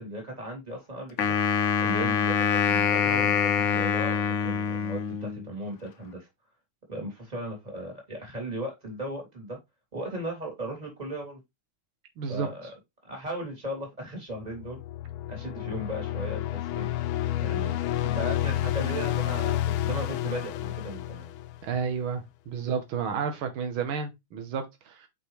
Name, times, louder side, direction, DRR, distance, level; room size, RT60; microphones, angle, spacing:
voice 1, 0.0-1.4 1.8-6.3 6.9-9.6 9.9-11.4 12.3-12.7 13.0-14.8 15.3-16.9 17.4-21.3, right 1 dB, 20° right, 3.1 m, -37 dB
Wind instrument woodwind instrument, 1.2-5.5, left 7 dB, 70° left, 0.7 m, -25 dB
voice 2, 12.2-12.5 21.6-25.1, right 6 dB, 85° right, 1.9 m, -31 dB
sound 1, 14.5-21.9, left 13 dB, 90° left, 1.5 m, -30 dB
6.0 x 5.5 x 3.2 m
omnidirectional pair, 2.2 m